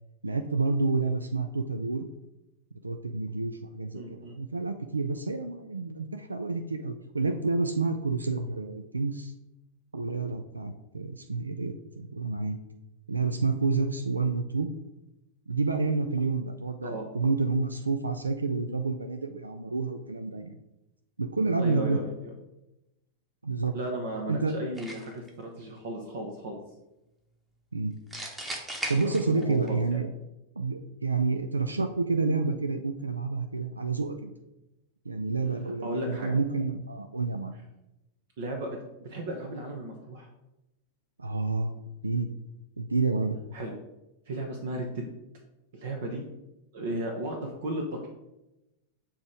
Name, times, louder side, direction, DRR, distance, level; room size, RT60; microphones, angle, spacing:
voice 1, 0.2-2.1 2.8-9.3 9.9-12.6 13.1-14.7 15.5-20.6 21.2-22.0 23.4-23.7 24.3-24.5 27.7-27.9 28.9-30.1 30.6-34.3 35.1-37.6 41.2-41.7 42.0-42.3 42.8-43.4, right 3 dB, 80° right, 8 dB, 0.3 m, -29 dB
voice 2, 3.9-4.4 16.8-17.0 21.6-22.3 23.7-26.6 29.3-30.0 35.8-36.3 38.4-40.3 43.5-43.7 44.3-45.0 45.7-46.2 46.7-48.1, right 1 dB, 55° right, 2 dB, 0.9 m, -35 dB
sound 1, 24.8-25.3 28.1-29.7, right 1 dB, 10° right, 1.1 m, -37 dB
7.3 x 2.9 x 4.8 m, 0.94 s
figure-of-eight pair, 90°, 0 cm